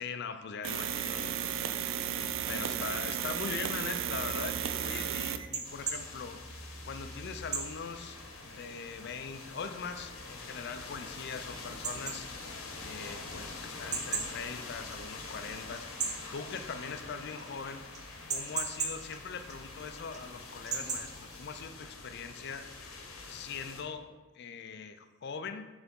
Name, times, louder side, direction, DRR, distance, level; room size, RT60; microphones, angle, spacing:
voice 1, 0.0-1.4 2.5-6.4 6.8-12.3 12.8-15.8 16.3-17.8 18.3-22.7 23.3-25.7, left 5 dB, 50° left, 9 dB, 0.4 m, -41 dB
sound 1, 0.6-5.5, right 9 dB, 70° right, 0.4 m, -34 dB
sound 2, 2.1-21.7, right 4 dB, 35° right, 0.7 m, -42 dB
sound 3, 5.6-23.8, left 3 dB, 85° left, 0.9 m, -45 dB
5.7 x 3.4 x 5.3 m, 1.3 s
head